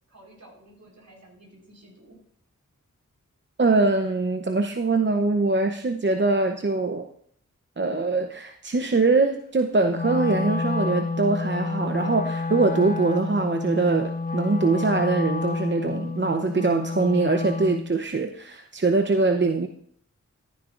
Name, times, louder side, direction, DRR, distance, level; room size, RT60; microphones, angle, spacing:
voice 1, 0.1-2.2, right 1 dB, 60° right, -2 dB, 4.4 m, -52 dB
voice 2, 3.6-7.0 7.8-19.7, right 3 dB, 35° right, 5 dB, 0.7 m, -23 dB
Wind instrument woodwind instrument, 9.9-17.9, left 3 dB, 30° left, 0.4 m, -29 dB
13.0 x 11.0 x 2.5 m, 0.65 s
cardioid pair, 40°, 33 cm